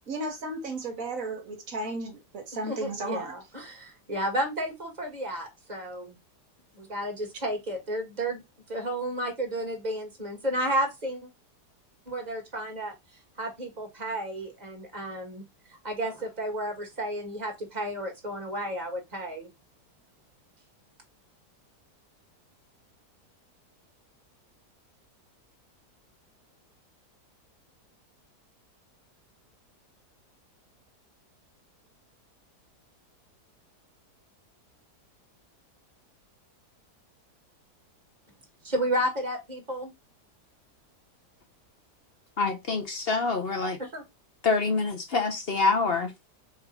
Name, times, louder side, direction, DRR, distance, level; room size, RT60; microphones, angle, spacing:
voice 1, 0.1-3.4, right 2 dB, 55° right, 1.5 m, -34 dB
voice 2, 2.7-6.2 6.7-8.4 8.7-11.3 12.1-13.0 13.4-15.4 15.8-19.5 38.6-39.9 43.8-44.0, right 1 dB, 25° right, 1.8 m, -32 dB
voice 3, 42.4-43.8 44.4-46.1, left 4 dB, 45° left, 0.8 m, -26 dB
4.3 x 2.8 x 3.9 m
omnidirectional pair, 1.7 m